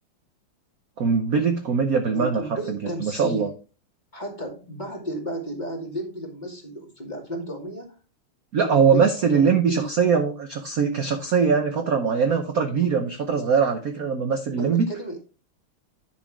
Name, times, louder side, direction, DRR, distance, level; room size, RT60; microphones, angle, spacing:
voice 1, 1.0-3.5 8.5-14.8, right 6 dB, 55° right, 5 dB, 1.1 m, -22 dB
voice 2, 2.1-3.5 4.1-8.0 8.6-9.8 14.5-15.2, right 1 dB, 20° left, -1 dB, 2.3 m, -33 dB
10.5 x 6.2 x 3.6 m, 0.34 s
omnidirectional pair, 2.4 m